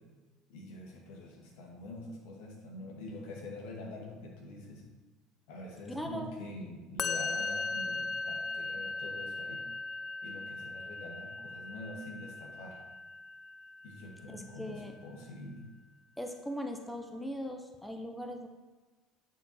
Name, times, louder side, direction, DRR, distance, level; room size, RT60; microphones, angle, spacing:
voice 1, 0.5-4.8 5.5-9.6 10.2-12.8 13.8-15.7, left 2 dB, 75° left, 0 dB, 1.9 m, -45 dB
voice 2, 5.9-6.4 14.3-14.9 16.2-18.5, equal, 5° left, 4 dB, 0.8 m, -39 dB
Musical instrument, 7.0-14.3, left 3 dB, 40° left, 0.3 m, -38 dB
9.2 x 4.5 x 4.3 m, 1.3 s
hypercardioid pair, 85°, 0 cm